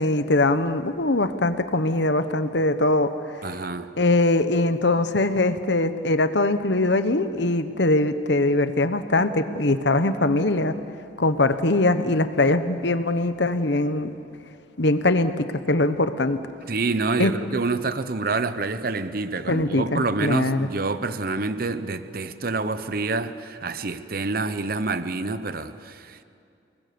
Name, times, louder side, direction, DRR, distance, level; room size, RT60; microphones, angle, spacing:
voice 1, 0.0-3.1 4.0-10.7 11.2-14.1 14.8-16.4 17.2-17.3 19.5-20.7, left 2 dB, 65° left, 1.1 m, -22 dB
voice 2, 3.4-3.9 16.7-26.2, right 3 dB, 50° right, 0.9 m, -27 dB
30.0 x 20.0 x 7.0 m
head